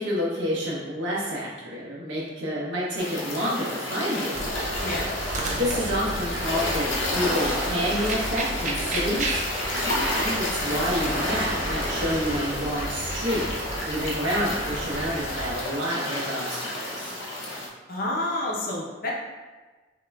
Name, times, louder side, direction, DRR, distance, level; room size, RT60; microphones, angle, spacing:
voice 1, 0.0-4.4 5.5-9.4 10.0-13.5 13.8-17.2, equal, 80° right, -5 dB, 1.2 m, -29 dB
sound 1, 3.0-17.7, left 1 dB, 85° left, 0.8 m, -30 dB
sound 2, 4.3-15.6, right 1 dB, 40° right, 0.5 m, -33 dB
voice 2, 4.8-5.2 17.9-19.1, left 1 dB, 50° left, -2 dB, 0.7 m, -29 dB
5.8 x 3.0 x 2.3 m, 1.3 s
head